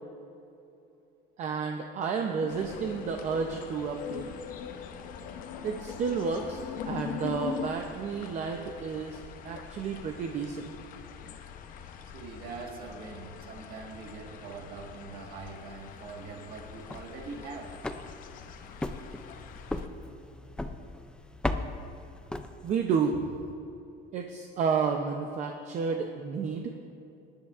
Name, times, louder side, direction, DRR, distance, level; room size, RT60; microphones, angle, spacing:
voice 1, 1.4-4.3 5.6-10.7 22.6-23.4 24.1-26.7, right 5 dB, 40° right, 4 dB, 0.6 m, -31 dB
sound 1, 2.3-7.7, left 8 dB, 90° left, 1.0 m, -39 dB
sound 2, 2.5-19.9, left 7 dB, 45° left, 0.7 m, -47 dB
voice 2, 12.1-17.8, right 4 dB, 55° right, 1 dB, 1.6 m, -43 dB
sound 3, 16.7-23.0, left 2 dB, 5° left, 0.4 m, -38 dB
20.5 x 10.5 x 2.5 m, 2.7 s
cardioid pair, 165°, 19 cm